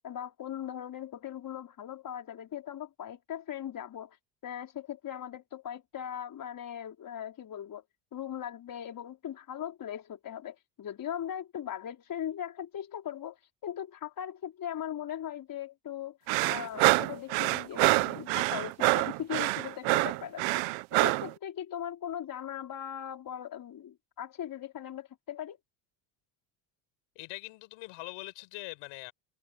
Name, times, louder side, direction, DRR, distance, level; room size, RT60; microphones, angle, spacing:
voice 1, 0.0-4.2 4.4-7.8 8.1-16.2 16.4-20.6 20.9-25.6, left 10 dB, 45° left, 4.7 m, -39 dB
sound 1, 16.3-21.3, right 24 dB, 70° right, 0.9 m, -26 dB
voice 2, 27.2-29.1, left 25 dB, 75° left, 5.4 m, -42 dB
supercardioid pair, 100°, 47 cm